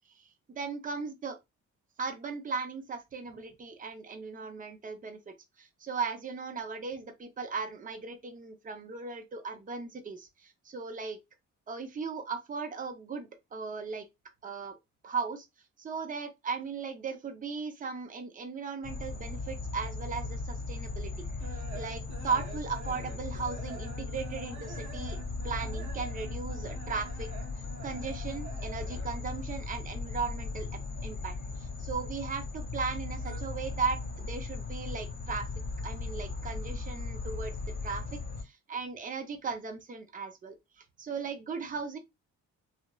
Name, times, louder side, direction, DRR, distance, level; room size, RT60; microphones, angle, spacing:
voice 1, 0.2-1.4 2.0-11.2 11.7-14.0 14.4-14.7 15.0-15.5 15.8-21.1 21.7-25.2 25.4-27.3 27.8-35.5 35.8-37.5 37.8-40.5 41.0-42.0, right 5 dB, 30° right, 0.6 m, -37 dB
sound 1, 18.8-38.4, left 3 dB, 35° left, 1.1 m, -38 dB
sound 2, 21.4-29.3 29.6-30.8 31.1-32.5 32.7-33.4, right 6 dB, 70° right, 0.7 m, -48 dB
2.8 x 2.1 x 2.3 m
cardioid pair, 90°, 30 cm